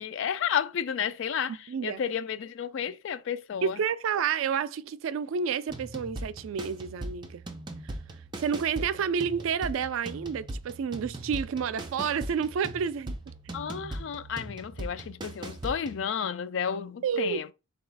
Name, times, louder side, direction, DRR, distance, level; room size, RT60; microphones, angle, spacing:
voice 1, 0.0-3.8 13.5-17.5, left 8 dB, 70° left, 0.3 m, -32 dB
voice 2, 1.5-2.0 3.6-7.4 7.8-7.9 8.4-13.2 17.0-17.4, right 7 dB, 85° right, 0.3 m, -30 dB
sound 1, 5.7-16.0, right 1 dB, 20° right, 0.5 m, -40 dB
3.9 x 2.3 x 4.6 m
head